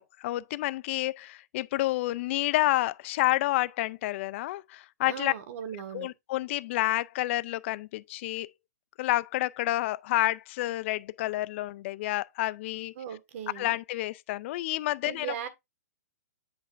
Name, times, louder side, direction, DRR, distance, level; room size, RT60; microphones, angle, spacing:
voice 1, 0.0-5.3 5.9-8.5 9.0-12.9 13.6-15.5, left 17 dB, 45° left, 0.4 m, -29 dB
voice 2, 5.1-6.1 13.0-13.7 15.0-15.5, right 9 dB, 55° right, 1.6 m, -38 dB
8.1 x 4.9 x 2.5 m
hypercardioid pair, 130°, 9 cm